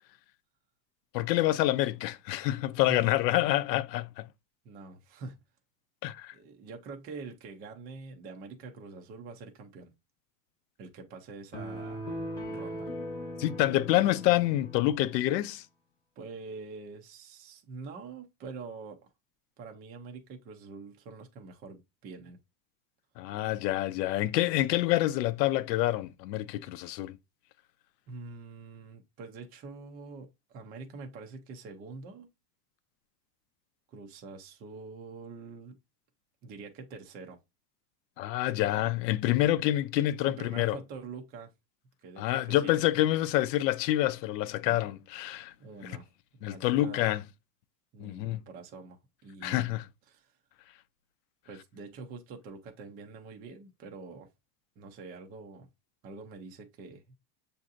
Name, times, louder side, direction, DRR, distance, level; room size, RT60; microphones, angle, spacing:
voice 1, 1.1-4.3 6.0-6.3 13.4-15.6 23.2-27.2 38.2-40.8 42.2-45.5 45.8-45.9 46.4-47.2 48.0-48.4 49.4-49.9, left 15 dB, 90° left, 0.6 m, -27 dB
voice 2, 4.6-5.4 6.3-9.9 10.8-12.1 12.5-12.9 16.2-19.0 19.6-22.4 28.1-32.3 33.9-35.8 36.4-37.4 40.2-41.5 42.0-42.7 44.7-44.8 45.6-46.1 46.4-47.1 47.9-49.8 50.1-50.3 51.5-54.3 54.8-55.7 56.0-57.2, right 4 dB, 25° right, 0.3 m, -45 dB
sound 1, 11.5-15.1, equal, 10° left, 0.7 m, -39 dB
6.3 x 2.7 x 2.4 m
supercardioid pair, 135°, 49 cm